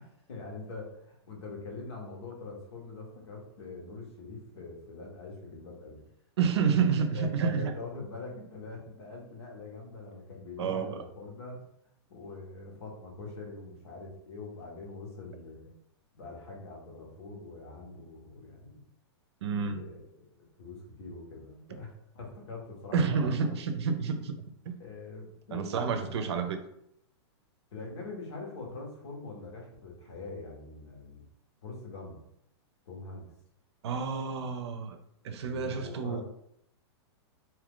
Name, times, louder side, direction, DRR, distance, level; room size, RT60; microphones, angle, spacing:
voice 1, 0.0-6.0 7.1-11.6 12.1-15.7 16.1-18.8 19.6-23.5 24.8-26.0 27.7-31.2 31.6-32.2 32.9-33.3 35.2-36.2, left 3 dB, 80° left, 1.3 m, -44 dB
voice 2, 6.4-7.7 10.6-11.0 19.4-19.8 22.9-24.4 24.7-24.8 25.5-26.6 33.8-35.0 35.2-36.2, right 6 dB, 75° right, 0.5 m, -29 dB
2.7 x 2.4 x 3.6 m
hypercardioid pair, 160°, 14 cm